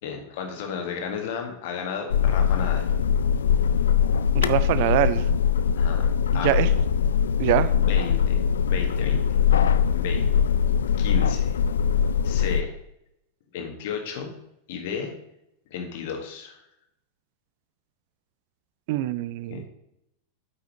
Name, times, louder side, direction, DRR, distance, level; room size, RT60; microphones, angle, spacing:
voice 1, 0.0-2.9 5.7-6.1 6.3-6.6 7.8-8.4 8.7-9.2 9.5-10.3 11.0-11.6 12.2-12.7 13.5-14.3 14.7-15.1 15.7-16.6 19.5-19.7, left 6 dB, 50° left, 3 dB, 1.5 m, -33 dB
sound 1, 2.1-12.6, left 7 dB, 65° left, 0.3 m, -22 dB
voice 2, 4.3-5.2 6.4-6.7 7.4-7.7 18.9-19.6, right 14 dB, 50° right, 14 dB, 0.4 m, -23 dB
8.6 x 5.7 x 3.0 m, 0.80 s
figure-of-eight pair, 90°, 0 cm